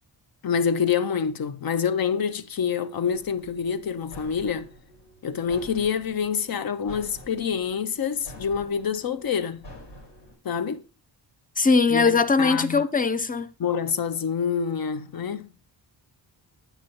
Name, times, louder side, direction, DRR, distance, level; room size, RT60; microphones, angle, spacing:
voice 1, 0.4-4.7 5.2-9.7 10.4-10.8 11.9-12.9 13.6-15.5, left 7 dB, 55° left, 0.7 m, -27 dB
sound 1, 3.1-10.3, equal, 75° left, 4.7 m, -47 dB
voice 2, 11.6-13.5, left 4 dB, 20° left, 0.4 m, -20 dB
8.9 x 7.6 x 3.0 m
wide cardioid pair, 115°, 42 cm